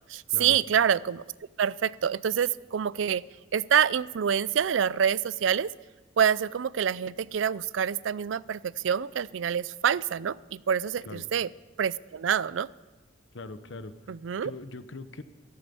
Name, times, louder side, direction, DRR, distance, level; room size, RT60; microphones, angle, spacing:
voice 1, 0.1-1.2 1.6-3.2 3.5-5.7 6.2-11.5 11.8-12.7 14.1-14.5, right 8 dB, 90° right, 20 dB, 0.4 m, -26 dB
voice 2, 13.3-13.9 14.4-15.2, left 2 dB, 75° left, 11 dB, 1.0 m, -41 dB
14.0 x 13.5 x 7.0 m, 1.2 s
head